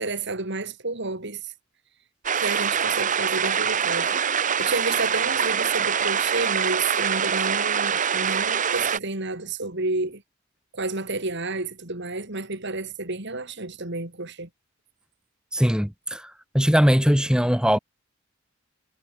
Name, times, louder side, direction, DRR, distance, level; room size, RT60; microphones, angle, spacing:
voice 1, 0.0-1.4 2.3-10.2 10.7-14.5, right 3 dB, 60° right, 3.6 m, -30 dB
sound 1, 2.2-9.0, right 7 dB, 40° right, 1.1 m, -24 dB
voice 2, 15.5-17.8, equal, 5° right, 1.9 m, -21 dB
head